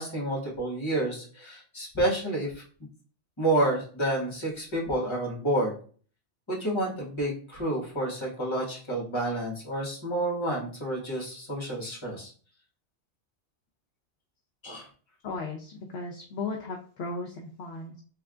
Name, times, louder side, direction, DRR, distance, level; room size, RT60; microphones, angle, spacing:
voice 1, 0.0-2.6 3.4-5.8 6.5-12.3 14.6-14.9, right 1 dB, 25° left, -3 dB, 1.4 m, -29 dB
voice 2, 15.2-18.0, left 3 dB, 65° left, 1 dB, 0.8 m, -36 dB
3.6 x 3.4 x 2.4 m, 0.43 s
omnidirectional pair, 1.2 m